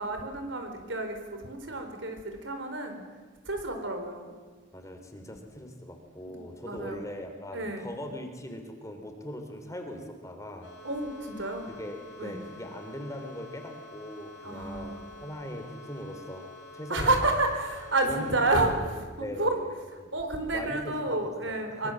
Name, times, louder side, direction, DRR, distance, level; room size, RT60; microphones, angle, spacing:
voice 1, 0.0-3.0 3.4-4.3 5.1-5.3 6.3-7.0 7.5-7.8 10.8-11.7 12.2-12.4 14.4-15.0 16.9-18.7 19.4-19.6 20.1-21.9, right 2 dB, 65° right, 5 dB, 4.7 m, -30 dB
voice 2, 4.7-10.7 11.7-17.3 18.0-18.9 19.2-20.1 20.5-21.9, equal, 15° left, 5 dB, 3.4 m, -40 dB
sound 1, 10.6-18.7, left 2 dB, 70° left, 5.0 m, -48 dB
24.5 x 23.5 x 7.7 m, 1.4 s
head